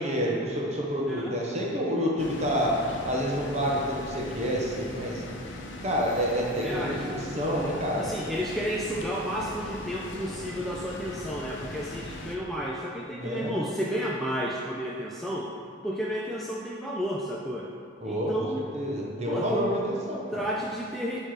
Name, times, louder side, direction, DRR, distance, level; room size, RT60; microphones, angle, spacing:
voice 1, 0.0-2.8 3.0-5.2 5.8-8.1 13.1-13.6 18.0-18.3 18.7-20.5, equal, 35° right, -3 dB, 1.1 m, -28 dB
voice 2, 1.1-1.4 6.6-7.1 8.0-15.5 15.8-17.7 18.0-18.7 19.3-19.6 20.1-21.2, equal, ahead, -4 dB, 0.4 m, -32 dB
sound 1, 2.2-12.4, left 2 dB, 75° left, 0.7 m, -40 dB
9.8 x 3.3 x 4.9 m, 2.3 s
head